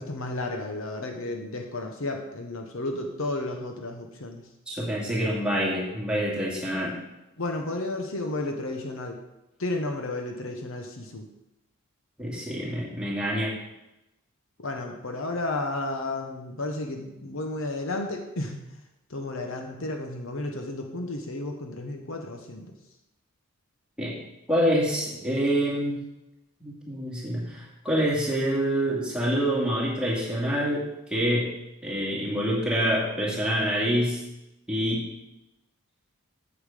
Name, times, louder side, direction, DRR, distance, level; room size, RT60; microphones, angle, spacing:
voice 1, 0.0-4.4 7.4-9.2 9.6-11.3 14.6-18.8 19.1-22.7, left 2 dB, 60° left, 3 dB, 1.0 m, -32 dB
voice 2, 4.7-6.9 12.2-13.5 24.0-24.1 24.5-26.0 26.6-30.8 31.1-31.5 31.8-34.2 34.7-35.0, equal, 5° right, -5 dB, 2.4 m, -26 dB
8.5 x 7.2 x 5.1 m, 0.94 s
head